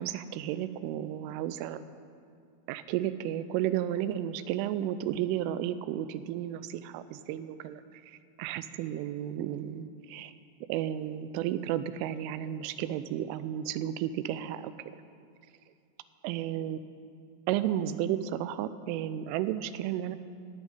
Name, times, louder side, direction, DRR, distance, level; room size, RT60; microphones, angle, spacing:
voice 1, 0.0-1.8 2.7-10.3 10.7-14.7 16.2-16.8 17.5-20.2, right 11 dB, 85° right, 13 dB, 3.1 m, -33 dB
15.0 x 6.4 x 9.0 m, 2.3 s
omnidirectional pair, 5.6 m